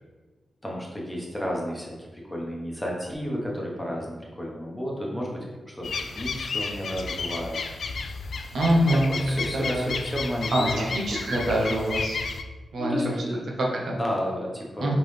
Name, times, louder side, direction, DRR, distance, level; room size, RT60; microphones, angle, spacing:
voice 1, 0.6-7.6 8.7-11.3 12.8-13.4 13.9-15.0, equal, 10° left, -3 dB, 1.1 m, -32 dB
sound 1, 5.8-12.4, left 4 dB, 70° left, 0.3 m, -32 dB
voice 2, 8.5-9.1 9.5-9.9 10.5-12.2 12.7-13.1 13.6-14.0 14.8-15.0, right 1 dB, 75° right, -2 dB, 0.9 m, -24 dB
4.2 x 3.8 x 3.3 m, 1.3 s
cardioid pair, 85°, 0 cm